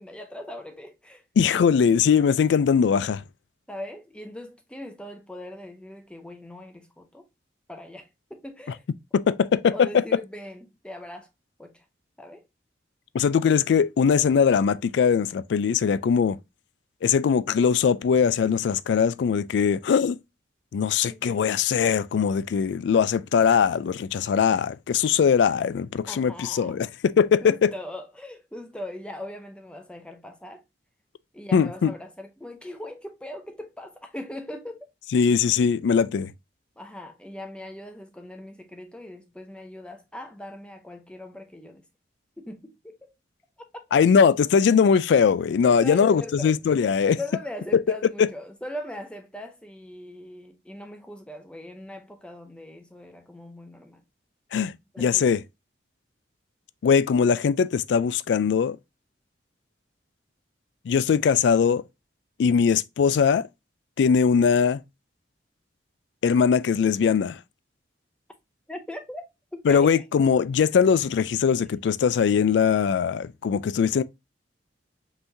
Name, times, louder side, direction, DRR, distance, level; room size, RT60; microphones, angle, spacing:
voice 1, 0.0-1.2 3.7-7.2 7.7-8.8 9.7-11.3 11.6-11.8 12.2-12.4 21.0-21.5 26.1-26.8 27.4-30.6 31.3-34.9 36.8-41.8 42.4-43.1 45.8-46.5 47.2-54.0 54.9-55.4 68.7-69.2 69.5-70.0, left 1 dB, 5° left, 0.5 m, -40 dB
voice 2, 1.4-3.2 9.1-10.0 13.1-16.4 17.0-20.2 20.7-27.7 31.5-31.9 35.1-36.3 43.9-47.2 48.2-48.3 54.5-54.7 55.0-55.4 56.8-58.8 60.9-61.8 62.4-63.5 64.0-64.8 66.2-67.4 69.7-74.0, left 6 dB, 70° left, 0.3 m, -21 dB
5.5 x 3.1 x 2.6 m
head